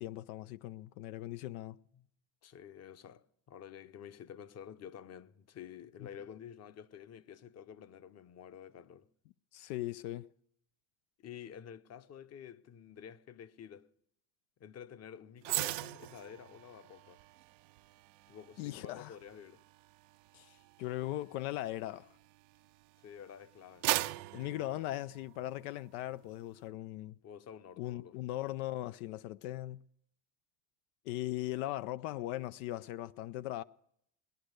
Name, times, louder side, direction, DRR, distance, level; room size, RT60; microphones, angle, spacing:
voice 1, 0.0-1.8 9.5-10.3 18.6-19.2 20.3-22.1 24.3-27.2 27.8-29.8 31.1-33.6, left 15 dB, 80° left, 0.6 m, -39 dB
voice 2, 2.4-9.1 11.2-13.9 14.6-17.2 18.3-19.6 23.0-23.9 27.2-28.2, left 8 dB, 35° left, 0.8 m, -50 dB
sound 1, 15.4-22.8 23.3-25.7 26.0-26.2, right 19 dB, 85° right, 0.7 m, -40 dB
19.5 x 10.5 x 6.5 m
supercardioid pair, 100°, 45 cm